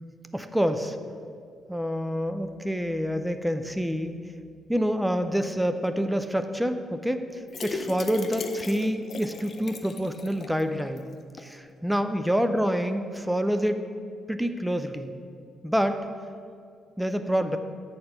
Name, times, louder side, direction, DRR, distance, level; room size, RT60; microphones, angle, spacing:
voice 1, 0.3-1.0 1.7-4.1 4.7-11.0 11.4-13.8 14.3-15.1 15.6-16.0 17.0-17.6, equal, 5° right, 8 dB, 0.5 m, -27 dB
sound 1, 7.5-10.6 11.0-11.1 11.4-11.5, left 3 dB, 50° left, 0.6 m, -36 dB
6.8 x 4.3 x 6.5 m, 2.3 s
hypercardioid pair, 50°, 0 cm